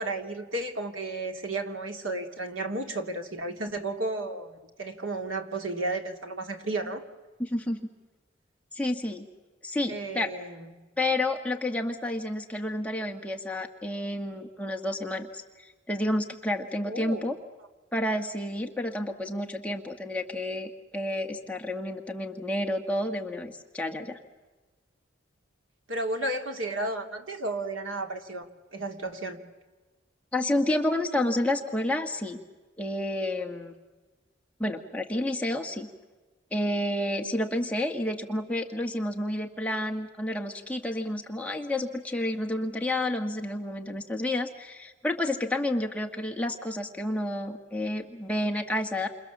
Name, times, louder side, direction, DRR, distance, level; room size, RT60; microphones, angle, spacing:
voice 1, 0.0-7.0 9.9-10.7 16.9-17.3 25.9-28.5 28.7-29.4, right 2 dB, 90° right, 4 dB, 2.9 m, -33 dB
voice 2, 7.4-7.9 8.7-9.2 9.6-10.3 11.0-17.3 17.9-24.2 30.3-32.4 32.8-33.7 34.6-35.9 36.5-49.1, left 1 dB, 5° left, 2 dB, 1.6 m, -30 dB
29.0 x 27.5 x 7.4 m, 1.2 s
head